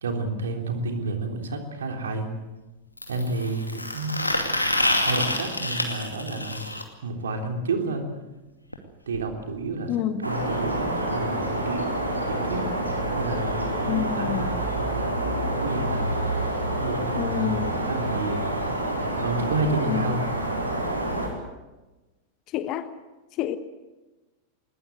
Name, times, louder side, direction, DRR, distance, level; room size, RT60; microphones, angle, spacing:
voice 1, 0.0-2.3 3.1-4.2 5.0-6.6 7.0-8.1 9.1-9.9 10.2-11.9 12.3-12.7 13.2-16.0 16.8-18.5 19.2-20.2, right 3 dB, 65° right, 4 dB, 3.5 m, -30 dB
sound 1, 1.0-1.1 3.0-6.8 8.7-8.8 9.1-9.2 9.5-9.6 10.5-10.6, left 1 dB, 85° left, 2.5 m, -27 dB
voice 2, 9.9-10.3 13.9-14.5 17.2-17.9 19.9-20.0 22.5-22.9 23.4-23.6, left 10 dB, 40° left, 12 dB, 1.2 m, -28 dB
sound 2, 10.2-21.3, right 1 dB, 85° right, 4.6 m, -28 dB
21.5 x 20.5 x 8.0 m, 1.1 s
figure-of-eight pair, 90°, 0 cm